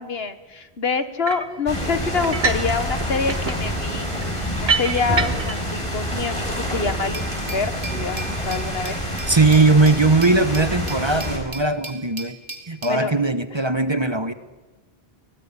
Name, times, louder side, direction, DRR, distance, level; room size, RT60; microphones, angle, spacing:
voice 1, 0.0-4.1 4.6-7.2 7.5-9.0 12.9-13.1, left 4 dB, 75° left, 10 dB, 1.8 m, -26 dB
sound 1, 1.2-1.6 2.2-2.7 3.0-5.6, right 5 dB, 80° right, 1.9 m, -26 dB
sound 2, 1.7-11.4, equal, 30° left, 5.8 m, -27 dB
Glass, 7.1-13.0, right 3 dB, 60° right, 3.0 m, -38 dB
voice 2, 9.3-12.4 12.7-14.3, right 3 dB, 25° right, 11 dB, 1.2 m, -19 dB
24.0 x 19.0 x 9.8 m, 1.2 s
omnidirectional pair, 1.0 m